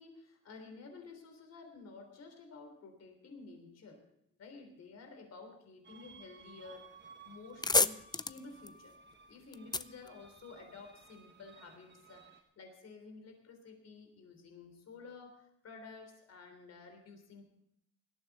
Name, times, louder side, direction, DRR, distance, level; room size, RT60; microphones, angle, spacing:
voice 1, 0.0-4.0 4.4-8.9 9.3-17.4, left 4 dB, 55° left, 4 dB, 3.5 m, -52 dB
sound 1, 5.8-12.4, right 5 dB, 35° right, 1.5 m, -58 dB
sound 2, 6.9-7.0 7.3-10.9, left 3 dB, 15° left, 0.5 m, -33 dB
18.0 x 13.0 x 4.1 m, 0.72 s
cardioid pair, 90°, 30 cm